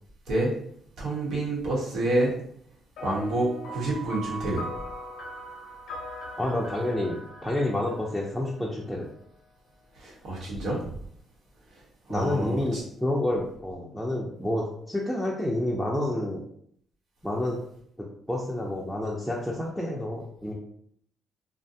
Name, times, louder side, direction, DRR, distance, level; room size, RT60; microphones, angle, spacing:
voice 1, 1.0-2.3 3.0-4.7 10.0-10.9 12.1-12.8, right 1 dB, 75° right, -4 dB, 1.1 m, -28 dB
sound 1, 3.0-8.7, equal, 85° left, 0.6 m, -40 dB
voice 2, 6.4-9.1 12.1-16.4 17.2-17.6 18.3-20.5, left 1 dB, 5° left, -4 dB, 0.5 m, -29 dB
2.5 x 2.2 x 2.7 m, 0.66 s
cardioid pair, 90°, 0 cm